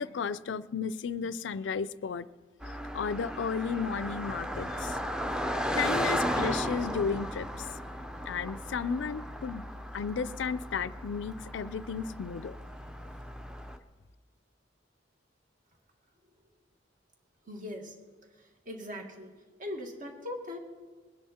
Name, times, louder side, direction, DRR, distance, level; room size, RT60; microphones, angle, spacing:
voice 1, 0.0-2.3 2.9-5.0 5.7-7.7 8.3-9.6 9.9-12.6, left 6 dB, 75° left, 17 dB, 0.4 m, -33 dB
Car passing by, 2.6-13.8, equal, 5° right, 0.6 m, -35 dB
voice 2, 17.5-17.9 18.4-19.3 19.6-20.6, left 1 dB, 45° right, 3 dB, 2.0 m, -40 dB
21.0 x 10.0 x 4.3 m, 1.4 s
head